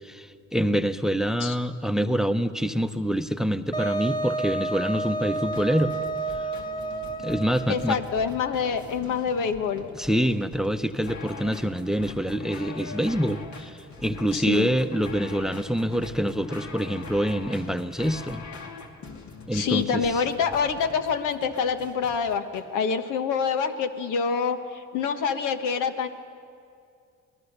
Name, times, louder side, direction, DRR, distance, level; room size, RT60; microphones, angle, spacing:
voice 1, 0.0-5.9 7.2-8.0 9.9-18.4 19.5-20.0, equal, ahead, 11 dB, 0.8 m, -26 dB
Wind instrument woodwind instrument, 3.7-8.1, right 2 dB, 15° left, 1.1 m, -30 dB
sound 1, 5.4-22.6, left 4 dB, 70° left, 2.5 m, -43 dB
voice 2, 7.7-9.9 14.3-14.7 19.5-26.1, left 6 dB, 90° left, 8 dB, 1.4 m, -26 dB
26.5 x 19.0 x 6.8 m, 2.4 s
cardioid pair, 90°, 30 cm